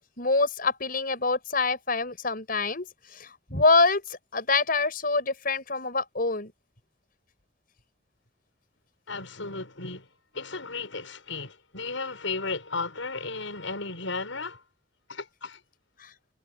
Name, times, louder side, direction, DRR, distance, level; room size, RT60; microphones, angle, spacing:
voice 1, 0.2-6.5 16.0-16.1, left 3 dB, 50° left, 6.0 m, -25 dB
voice 2, 9.1-10.0 10.3-14.6 15.1-15.6, left 3 dB, 85° left, 6.6 m, -34 dB
head